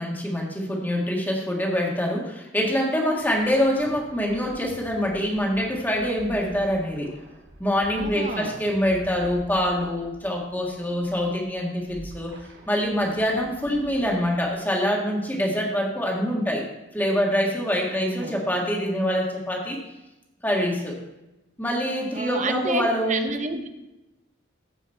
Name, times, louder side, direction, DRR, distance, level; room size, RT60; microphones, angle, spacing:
voice 1, 0.0-7.1 7.6-12.3 12.7-16.6 16.9-19.8 20.4-21.0 21.6-23.3, equal, 10° left, -2 dB, 1.7 m, -25 dB
sound 1, 3.1-14.5, equal, 80° right, 4.0 m, -47 dB
voice 2, 7.9-8.6 17.9-18.4 22.1-23.7, right 3 dB, 40° right, 7 dB, 0.8 m, -30 dB
14.5 x 5.4 x 4.4 m, 0.98 s
head